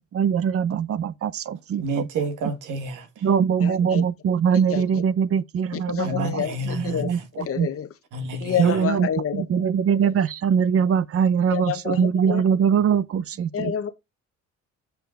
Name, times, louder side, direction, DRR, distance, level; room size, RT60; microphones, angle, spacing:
voice 1, 0.0-2.0 3.2-7.7 8.6-9.1 9.3-13.7, right 7 dB, 50° right, 0.7 m, -22 dB
voice 2, 1.8-3.3 6.0-7.2 8.1-8.8, right 2 dB, 85° right, 1.8 m, -30 dB
voice 3, 3.6-4.0 4.5-5.0 5.7-6.6 6.8-7.9 8.4-9.6 9.9-10.1 11.5-12.4 13.5-13.9, left 9 dB, 50° left, 1.1 m, -29 dB
6.9 x 6.6 x 3.9 m
cardioid pair, 90°, 30 cm